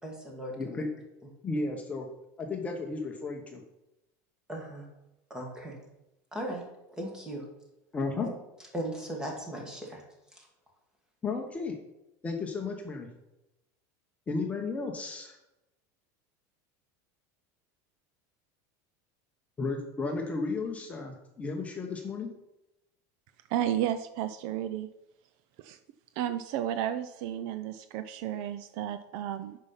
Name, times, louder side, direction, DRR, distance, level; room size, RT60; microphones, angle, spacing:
voice 1, 0.0-0.8 4.5-4.8 5.3-5.8 6.3-6.6 6.9-7.4 8.7-10.0 10.3-10.5, right 1 dB, 5° right, 0 dB, 1.9 m, -37 dB
voice 2, 0.6-0.9 1.4-2.1 2.4-3.6 7.9-8.3 11.2-11.8 12.2-13.1 14.3-15.4 19.6-22.3, left 3 dB, 15° left, 2 dB, 1.0 m, -33 dB
voice 3, 23.5-24.9 25.6-25.8 26.2-29.6, right 11 dB, 55° right, 10 dB, 0.5 m, -32 dB
8.8 x 5.6 x 5.7 m, 0.92 s
supercardioid pair, 165°, 9 cm